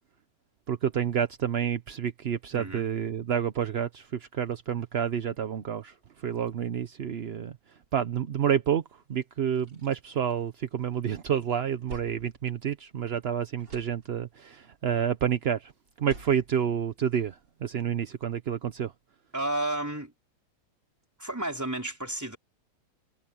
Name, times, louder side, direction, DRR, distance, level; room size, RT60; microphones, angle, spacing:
voice 1, 0.7-5.9 6.2-7.5 7.9-8.8 9.1-15.7 16.0-18.9, right 8 dB, 55° right, 0.7 m, -29 dB
voice 2, 2.5-2.9 19.3-20.1 21.2-22.4, right 1 dB, 10° right, 4.0 m, -32 dB
sound 1, 8.9-9.0 9.3-11.0 11.4-13.2 13.5-14.6 15.8-17.5, right 2 dB, 80° right, 7.3 m, -49 dB
omnidirectional pair, 1.9 m